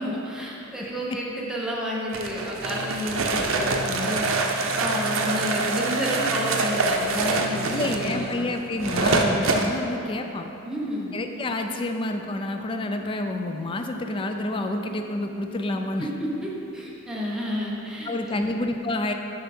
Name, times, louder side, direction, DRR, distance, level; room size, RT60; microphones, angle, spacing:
voice 1, 0.0-8.5 10.7-11.1 16.0-18.5, equal, 5° right, -5 dB, 0.9 m, -30 dB
sound 1, 2.1-9.7, right 3 dB, 80° right, 0.6 m, -25 dB
sound 2, 2.5-8.5 10.5-16.5, right 1 dB, 40° left, 1.7 m, -42 dB
voice 2, 7.7-10.5 11.1-16.1 18.0-19.1, left 2 dB, 25° left, 5 dB, 0.3 m, -28 dB
6.9 x 5.4 x 4.3 m, 2.9 s
head